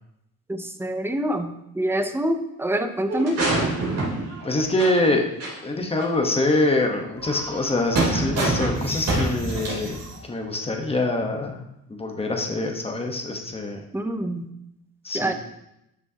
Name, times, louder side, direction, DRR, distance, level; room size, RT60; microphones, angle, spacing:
voice 1, 0.5-3.4 13.9-14.5 15.1-15.3, right 1 dB, 5° right, 7 dB, 0.5 m, -26 dB
sound 1, 3.1-5.1 5.4-5.5 6.0-6.1 7.2-10.2, right 2 dB, 45° right, 3.4 m, -26 dB
voice 2, 4.4-5.2 5.6-10.0 10.2-11.6 11.9-13.8 15.0-15.3, left 2 dB, 15° left, 2 dB, 1.0 m, -24 dB
12.5 x 6.2 x 2.8 m, 0.83 s
cardioid pair, 155°, 35 cm